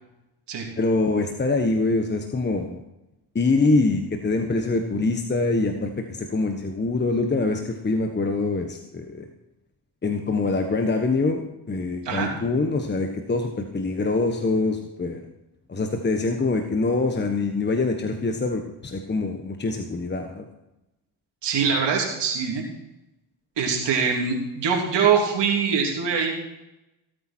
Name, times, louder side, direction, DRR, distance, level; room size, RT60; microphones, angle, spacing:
voice 1, 0.8-2.8 3.3-9.3 10.0-15.2 15.7-20.4, left 3 dB, 20° left, 5 dB, 1.3 m, -24 dB
voice 2, 21.4-22.6 23.6-26.3, right 6 dB, 60° right, -1 dB, 3.3 m, -23 dB
17.5 x 8.6 x 4.6 m, 0.93 s
supercardioid pair, 80°, 47 cm